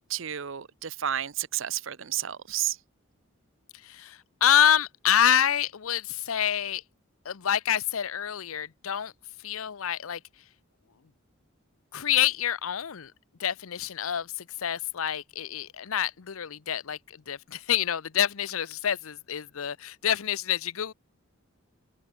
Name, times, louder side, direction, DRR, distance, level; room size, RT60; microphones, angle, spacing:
voice 1, 0.0-2.8, right 11 dB, 65° right, 0.7 m, -31 dB
voice 2, 3.8-6.8 7.2-9.1 9.4-10.2 11.9-13.1 13.4-20.9, left 9 dB, 80° left, 0.7 m, -27 dB
head